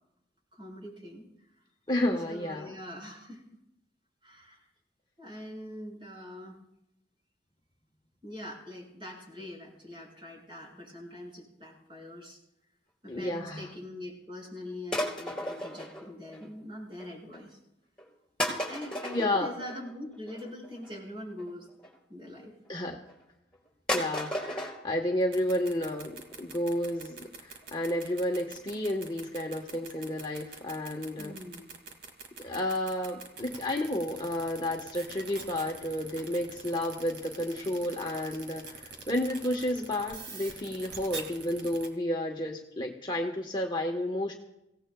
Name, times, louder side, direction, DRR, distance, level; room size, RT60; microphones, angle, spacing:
voice 1, 0.5-1.3 2.3-3.4 4.2-4.6 5.2-6.6 8.2-12.4 13.0-17.6 18.7-21.7 22.1-22.6 31.2-31.7, left 1 dB, 30° right, -2 dB, 5.9 m, -43 dB
voice 2, 1.9-2.8 13.1-13.7 19.1-19.5 22.7-23.0 23.9-31.3 32.4-44.3, left 1 dB, 25° left, 1 dB, 1.3 m, -31 dB
sound 1, 14.9-16.6 16.9-17.4 18.0-18.1 18.4-22.0 22.7-23.2 23.5-23.6 23.9-24.7 25.1-25.2 25.4-25.5 25.9-26.0 26.2-26.3 26.7-26.8 27.1-27.2 27.6-27.7 28.0-28.1, equal, 5° left, 3.8 m, -35 dB
sound 2, 25.2-41.9, right 5 dB, 85° right, 2.4 m, -43 dB
25.5 x 17.0 x 2.3 m, 0.84 s
head